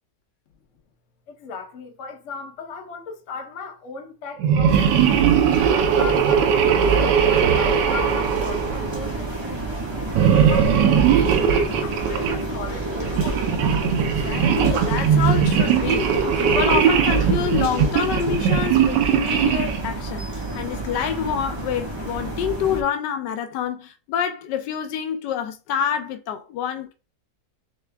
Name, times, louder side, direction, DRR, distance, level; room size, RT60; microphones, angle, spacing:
voice 1, 1.3-5.3 5.9-13.6, left 5 dB, 55° left, 1.0 m, -37 dB
sound 1, 4.4-9.2 10.1-12.4 13.0-19.9, right 7 dB, 85° right, 1.2 m, -19 dB
sound 2, 4.7-22.8, right 2 dB, 20° right, 1.1 m, -30 dB
voice 2, 14.0-26.9, left 8 dB, 85° left, 1.3 m, -27 dB
3.5 x 3.3 x 3.3 m
omnidirectional pair, 1.8 m